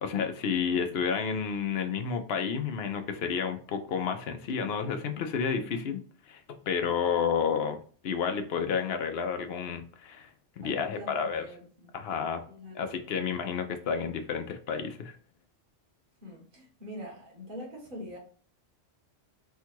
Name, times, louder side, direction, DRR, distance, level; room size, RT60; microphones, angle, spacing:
voice 1, 0.0-6.0 6.3-6.4 6.7-7.8 8.0-10.3 10.6-11.4 11.9-12.4 12.7-15.1, left 6 dB, 60° left, 7 dB, 0.9 m, -30 dB
voice 2, 10.6-11.9 12.5-13.0 16.2-18.2, left 1 dB, 45° right, -3 dB, 1.7 m, -44 dB
4.6 x 2.4 x 4.5 m, 0.43 s
omnidirectional pair, 1.3 m